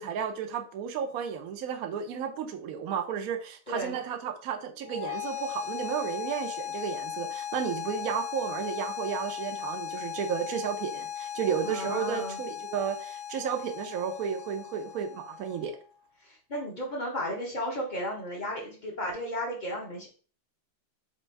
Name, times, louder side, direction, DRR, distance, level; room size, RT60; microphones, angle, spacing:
voice 1, 0.0-15.7, right 7 dB, 85° right, 4 dB, 0.7 m, -33 dB
voice 2, 3.7-4.0 11.6-12.4 16.2-20.1, equal, 50° left, -1 dB, 0.5 m, -34 dB
sound 1, 4.8-15.9, left 9 dB, 75° left, 1.8 m, -37 dB
4.3 x 2.6 x 4.5 m, 0.40 s
omnidirectional pair, 2.3 m